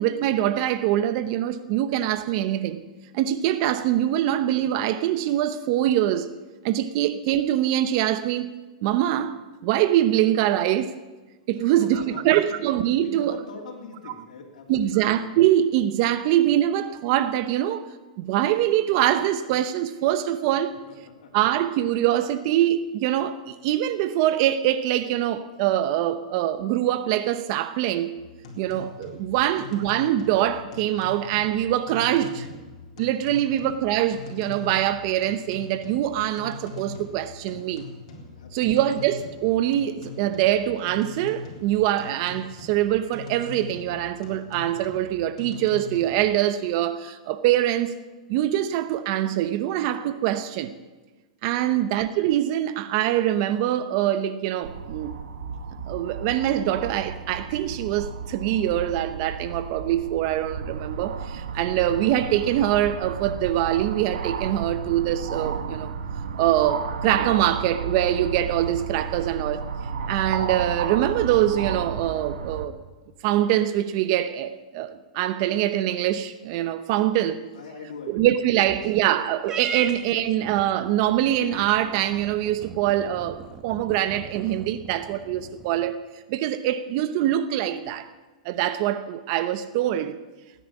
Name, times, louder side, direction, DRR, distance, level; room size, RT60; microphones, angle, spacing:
voice 1, 0.0-2.8 3.1-6.3 6.6-8.5 8.8-9.3 9.6-10.9 11.5-13.4 14.7-17.8 18.2-20.8 21.3-28.1 28.6-32.5 33.0-37.9 38.5-47.9 48.3-50.7 51.4-55.2 55.9-65.9 66.4-69.6 70.1-72.8 73.2-77.4 78.1-86.0 86.3-88.1 88.4-90.2, right 12 dB, 45° right, 0.8 m, -24 dB
voice 2, 11.6-12.6 13.0-15.0 20.9-21.3 29.3-29.6 38.3-38.8 51.6-51.9 77.5-78.3 78.7-78.8 79.7-79.9 80.1-80.2, left 5 dB, 80° left, 3.2 m, -43 dB
sound 1, 28.2-46.3, left 4 dB, 55° left, 4.1 m, -42 dB
sound 2, 54.6-72.7, right 6 dB, 90° right, 1.3 m, -33 dB
Purr / Meow, 79.4-85.9, right 6 dB, 15° right, 1.0 m, -39 dB
17.0 x 10.0 x 8.4 m
supercardioid pair, 150°, 4 cm